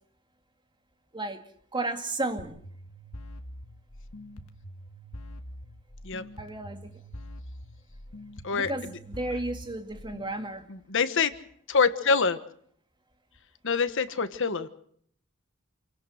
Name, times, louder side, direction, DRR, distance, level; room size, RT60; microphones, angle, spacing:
voice 1, 1.1-2.6 6.4-6.9 8.5-10.7, right 2 dB, 20° right, 2.2 m, -33 dB
sound 1, 2.4-10.4, equal, 80° left, 1.6 m, -44 dB
voice 2, 10.9-11.3 11.7-12.4 13.6-14.7, left 5 dB, 65° left, 1.3 m, -25 dB
28.5 x 17.5 x 6.5 m
head